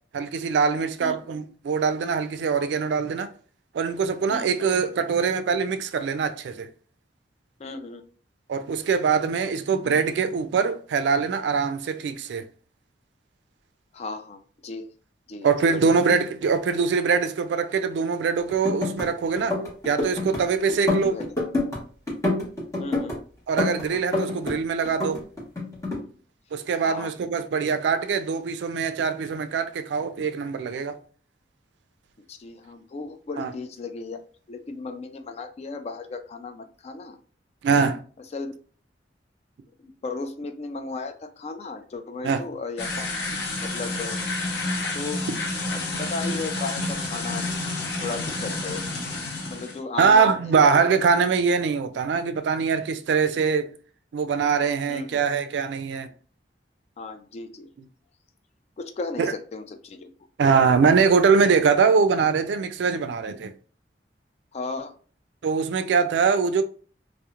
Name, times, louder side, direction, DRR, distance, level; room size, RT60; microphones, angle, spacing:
voice 1, 0.1-3.3 3.7-6.7 8.5-12.4 15.4-19.6 19.8-21.2 23.5-25.2 26.5-31.0 33.4-33.5 37.6-38.0 42.2-42.4 50.0-53.7 54.1-56.1 59.2-59.3 60.4-63.5 65.4-66.6, right 5 dB, 75° right, 0.3 m, -23 dB
voice 2, 7.6-8.0 13.9-14.9 15.3-15.5 15.7-16.0 21.0-21.3 22.8-23.2 26.8-27.1 32.3-34.2 34.5-37.2 38.3-38.5 39.8-42.9 43.6-44.2 44.9-45.3 45.7-47.4 48.0-48.8 49.5-50.3 50.8-50.9 54.9-55.2 57.0-57.7 58.8-60.1 64.5-64.9, left 3 dB, 35° left, 0.3 m, -35 dB
sound 1, 18.5-19.1 19.4-20.4 20.7-21.8 22.1-23.2 23.6-24.6 24.8-26.0, left 2 dB, 20° left, 0.8 m, -27 dB
sound 2, 42.8-49.8, left 2 dB, 70° left, 0.7 m, -29 dB
2.9 x 2.0 x 2.3 m
head